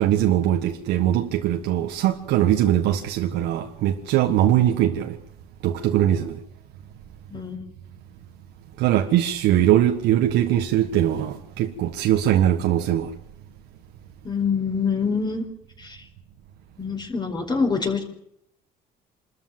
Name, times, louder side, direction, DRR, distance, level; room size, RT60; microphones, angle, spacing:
voice 1, 0.0-5.2 5.6-6.4 8.8-13.1, right 12 dB, 85° right, 1.6 m, -21 dB
voice 2, 7.3-7.6 14.2-15.4 15.8-16.0 16.8-18.0, left 5 dB, 25° left, 4.8 m, -26 dB
27.0 x 14.0 x 7.8 m
cardioid pair, 110°, 17 cm